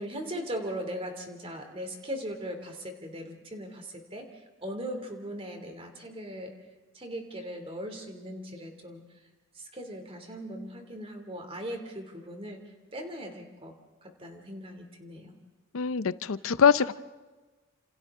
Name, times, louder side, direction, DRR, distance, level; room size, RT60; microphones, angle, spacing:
voice 1, 0.0-6.5 6.9-9.0 9.5-12.6 12.9-15.3, equal, 30° right, 5 dB, 2.8 m, -39 dB
voice 2, 15.7-16.9, left 6 dB, 90° left, 15 dB, 0.6 m, -23 dB
28.5 x 27.5 x 3.7 m, 1.3 s
head